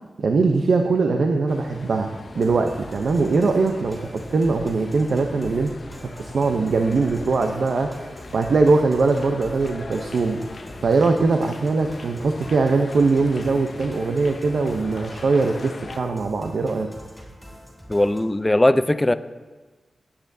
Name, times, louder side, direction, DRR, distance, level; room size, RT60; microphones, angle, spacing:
voice 1, 0.2-2.1 2.3-5.7 6.2-7.9 8.3-10.4 10.8-16.9, right 3 dB, 75° right, 4 dB, 0.6 m, -21 dB
sound 1, 1.5-16.0, left 3 dB, 55° left, 0.7 m, -41 dB
sound 2, 2.4-18.2, equal, ahead, 3.7 m, -43 dB
voice 2, 17.9-19.1, left 1 dB, 20° left, 13 dB, 0.4 m, -19 dB
18.0 x 8.7 x 2.7 m, 1.3 s
wide cardioid pair, 80°, 0 cm